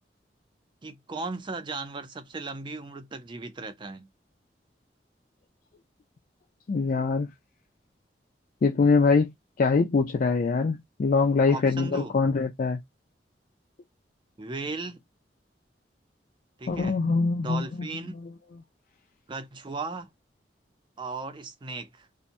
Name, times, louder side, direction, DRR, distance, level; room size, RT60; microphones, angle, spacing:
voice 1, 0.8-4.1 11.5-12.1 14.4-15.0 16.6-17.0 17.4-18.2 19.3-20.1 21.0-22.1, right 3 dB, 30° right, 0.4 m, -36 dB
voice 2, 6.7-7.3 8.6-9.3 9.6-12.8 16.7-17.6, left 4 dB, 50° left, 0.4 m, -23 dB
2.8 x 2.1 x 2.5 m
head